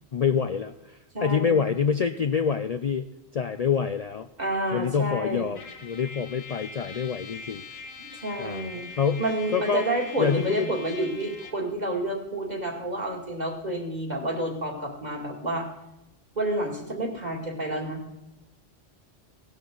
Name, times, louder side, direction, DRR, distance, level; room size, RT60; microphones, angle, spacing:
voice 1, 0.1-3.1 3.3-4.3 4.7-7.6 8.4-8.7 9.0-9.2 9.5-9.8 10.2-10.7, left 6 dB, 45° left, 10 dB, 0.5 m, -26 dB
voice 2, 1.1-1.7 4.4-5.5 8.0-8.9 9.2-15.7 16.4-18.0, right 1 dB, 40° right, 0 dB, 2.7 m, -29 dB
Trumpet, 5.5-11.7, left 4 dB, 65° left, 1.5 m, -42 dB
17.0 x 12.0 x 3.9 m, 0.95 s
omnidirectional pair, 1.1 m